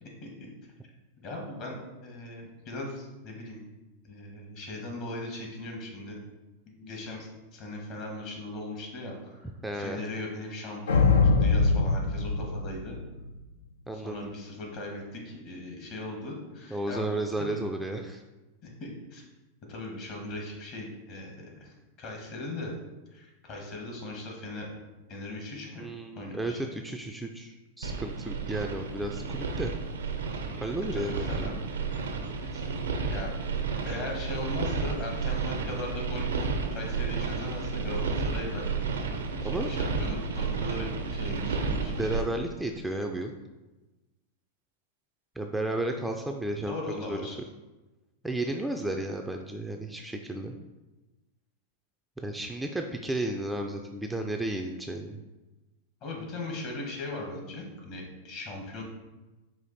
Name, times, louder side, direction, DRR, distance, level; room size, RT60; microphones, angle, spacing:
voice 1, 1.2-3.6 4.1-6.2 6.8-11.1 11.4-13.0 13.9-17.1 17.4-17.6 18.6-19.2 19.7-22.7 23.1-24.7 25.1-25.8 26.2-26.6 30.9-31.6 32.3-32.6 33.1-33.3 33.9-38.7 39.3-42.1 46.7-47.5 56.0-58.8, left 2 dB, 50° left, 0 dB, 1.4 m, -39 dB
voice 2, 9.6-10.0 13.9-14.3 16.7-18.2 25.8-29.7 30.6-31.5 39.4-39.7 42.0-43.3 45.4-47.4 48.2-50.6 52.2-55.2, right 1 dB, 5° right, 3 dB, 0.3 m, -33 dB
sound 1, 10.9-13.4, left 4 dB, 85° left, 0.4 m, -23 dB
sound 2, 27.8-42.2, right 4 dB, 90° right, 0.5 m, -32 dB
5.0 x 2.5 x 4.0 m, 1.1 s
hypercardioid pair, 110°, 0 cm